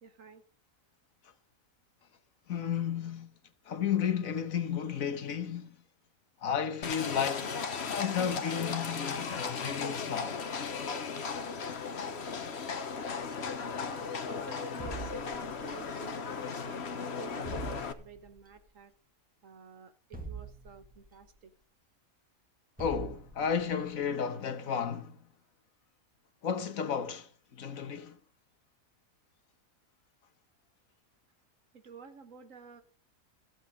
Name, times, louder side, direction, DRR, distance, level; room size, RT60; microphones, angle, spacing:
voice 1, 0.0-0.4 13.8-17.5 18.0-18.9 19.4-21.5 31.7-32.8, right 6 dB, 65° right, 1.7 m, -51 dB
voice 2, 2.5-3.3 3.7-5.7 6.4-7.5 7.9-10.4 22.8-25.2 26.4-28.2, left 8 dB, 70° left, 1.6 m, -33 dB
Livestock farm animals working animals, 6.8-17.9, left 5 dB, 50° left, 1.3 m, -36 dB
sound 1, 14.8-15.9 17.4-18.4 20.1-21.2 22.8-23.8, right 4 dB, 5° right, 1.8 m, -43 dB
14.5 x 7.9 x 5.1 m
omnidirectional pair, 1.5 m